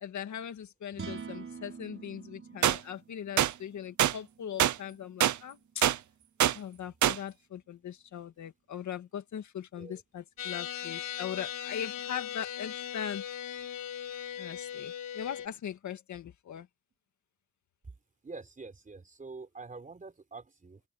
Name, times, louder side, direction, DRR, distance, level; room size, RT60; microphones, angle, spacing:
voice 1, 0.0-5.8 6.5-13.2 14.4-16.7, left 9 dB, 65° left, 1.9 m, -40 dB
sound 1, 0.9-7.3, right 6 dB, 40° right, 5.9 m, -48 dB
sound 2, 2.6-2.8 3.4-3.5 4.0-4.1 4.6-4.8 5.2-5.4 5.8-6.0 6.4-6.6 7.0-7.2, right 11 dB, 65° right, 0.9 m, -24 dB
sound 3, 10.4-15.5, left 10 dB, 85° left, 4.6 m, -39 dB
voice 2, 18.2-20.8, right 3 dB, 25° right, 4.5 m, -46 dB
cardioid pair, 135°, 32 cm